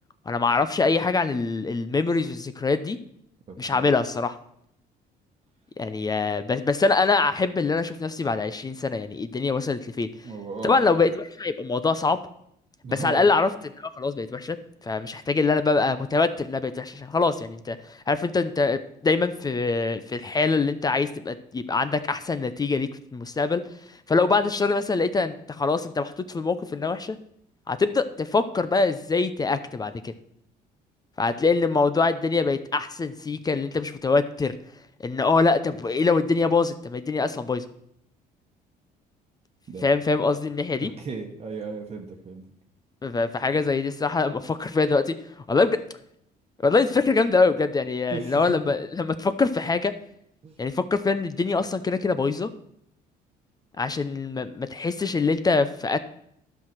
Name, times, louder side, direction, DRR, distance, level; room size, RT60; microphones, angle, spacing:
voice 1, 0.3-3.0 3.6-4.4 5.8-10.1 10.6-12.2 12.9-13.5 14.0-14.6 14.8-23.6 24.1-27.2 27.7-30.1 31.2-34.5 35.0-37.6 39.8-40.9 43.0-45.1 45.5-45.8 46.6-49.9 50.6-52.5 53.8-56.0, left 4 dB, 25° left, 11 dB, 0.6 m, -24 dB
voice 2, 3.5-3.9 10.2-10.8 12.8-13.3 39.7-39.9 40.8-42.4 48.1-48.8 50.4-50.6, right 4 dB, 35° right, 2 dB, 1.2 m, -36 dB
11.5 x 5.9 x 6.1 m, 0.73 s
cardioid pair, 110°, 17 cm